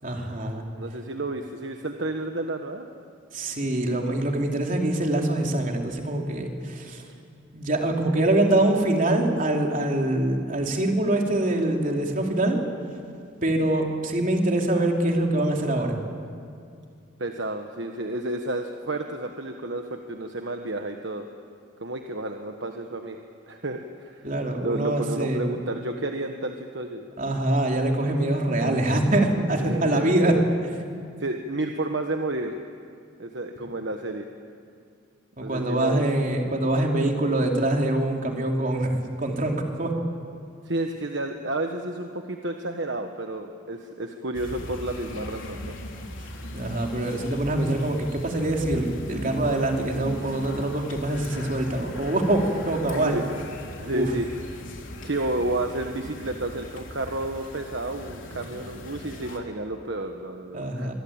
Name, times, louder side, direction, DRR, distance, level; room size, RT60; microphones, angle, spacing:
voice 1, 0.0-0.6 3.3-7.0 7.5-12.6 13.4-16.0 24.2-25.4 27.2-30.3 35.4-39.9 46.5-53.3 53.9-54.1 60.5-60.9, right 1 dB, 40° right, 1 dB, 3.4 m, -24 dB
voice 2, 0.8-2.9 17.2-21.2 21.8-23.2 23.5-24.2 24.6-27.0 29.6-30.4 31.2-32.5 33.2-34.3 35.4-36.1 40.6-45.8 53.0-53.3 53.8-54.4 55.0-60.9, right 2 dB, 60° right, 4 dB, 1.4 m, -31 dB
sound 1, 44.3-59.4, left 1 dB, 75° left, 3.7 m, -39 dB
25.5 x 22.5 x 8.9 m, 2.4 s
head